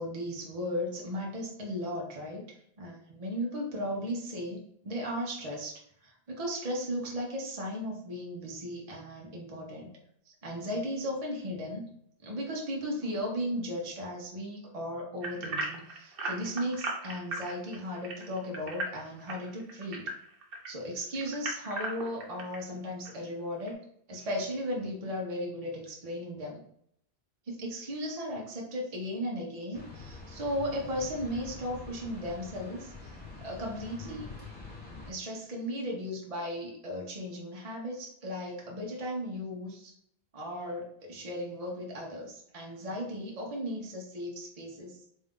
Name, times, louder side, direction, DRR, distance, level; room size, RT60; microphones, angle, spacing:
voice 1, 0.0-5.7 6.0-9.9 10.4-11.9 12.2-20.1 20.7-23.8 24.1-26.6 27.5-34.3 35.0-39.9 40.3-45.0, equal, 40° right, -1 dB, 0.9 m, -36 dB
sound 1, 15.2-20.7 21.1-22.6 23.1-23.2 23.7-23.8, right 2 dB, 65° right, 1.0 m, -36 dB
sound 2, 29.7-35.1, left 3 dB, 10° left, 1.1 m, -45 dB
3.6 x 2.6 x 3.6 m, 0.69 s
omnidirectional pair, 1.0 m